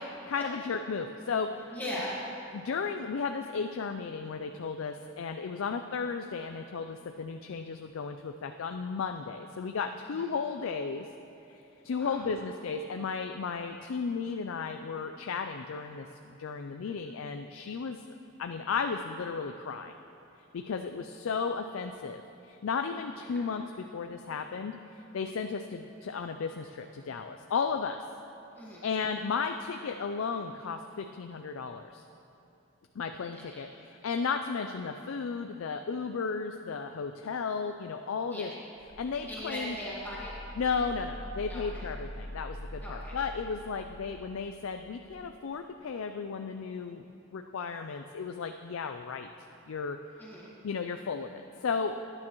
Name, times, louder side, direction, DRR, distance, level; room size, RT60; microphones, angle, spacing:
voice 1, 0.3-1.8 2.5-11.1 11.8-18.0 18.4-19.9 20.5-28.0 28.8-32.0 33.0-38.5 39.0-39.8 40.6-47.1 47.3-49.3 49.7-50.0 50.6-52.1, left 5 dB, 75° left, 6 dB, 0.4 m, -34 dB
voice 2, 1.7-2.2 10.0-10.2 11.8-12.3 23.3-23.4 28.5-28.9 33.3-33.4 38.3-38.5 39.3-40.3 41.5-41.8 42.8-43.2 50.2-50.5, left 1 dB, 10° left, -8 dB, 1.6 m, -39 dB
sound 1, 38.7-45.4, left 1 dB, 55° left, 1.8 m, -44 dB
18.0 x 9.8 x 3.1 m, 2.8 s
head